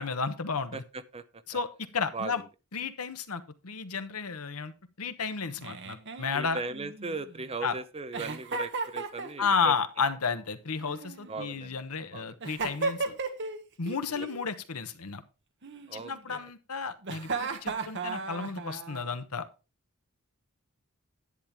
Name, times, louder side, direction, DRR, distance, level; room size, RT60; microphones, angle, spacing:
voice 1, 0.0-0.8 1.5-2.4 2.7-4.7 5.0-6.6 7.6-7.7 9.4-13.2 13.8-15.2 15.9-19.5, left 5 dB, 85° left, 10 dB, 1.1 m, -32 dB
voice 2, 0.7-1.6 2.1-2.4 6.3-9.7 11.3-11.7 12.1-12.4 15.9-16.4, right 3 dB, 25° right, 12 dB, 0.7 m, -38 dB
Giggle, 5.6-7.4 8.1-9.7 10.8-11.7 12.4-13.6 13.9-14.4 15.6-16.4 17.0-19.1, right 4 dB, 55° right, 1.3 m, -36 dB
10.5 x 8.8 x 3.5 m, 0.30 s
head